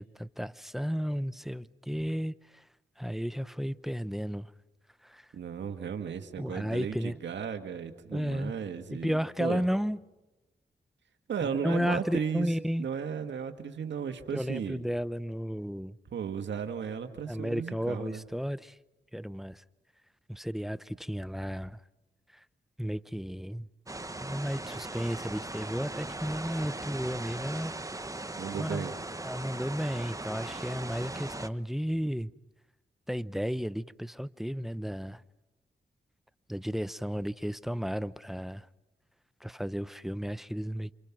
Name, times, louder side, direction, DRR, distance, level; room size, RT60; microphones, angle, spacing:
voice 1, 0.0-2.6 3.0-4.5 5.0-5.3 6.4-7.1 8.1-8.5 8.9-10.0 11.4-12.9 14.3-16.0 17.3-18.8 19.1-19.6 20.3-21.8 22.3-22.4 22.8-23.7 24.2-27.7 28.5-28.9 29.2-32.3 33.1-35.2 36.5-38.7 39.4-40.9, equal, ahead, 0.9 m, -33 dB
voice 2, 5.3-9.6 11.3-12.5 12.8-14.8 16.1-18.2 28.4-29.0, right 7 dB, 85° right, 2.1 m, -35 dB
sound 1, 23.9-31.5, right 2 dB, 20° right, 1.2 m, -39 dB
29.0 x 27.0 x 6.1 m
cardioid pair, 55°, 18 cm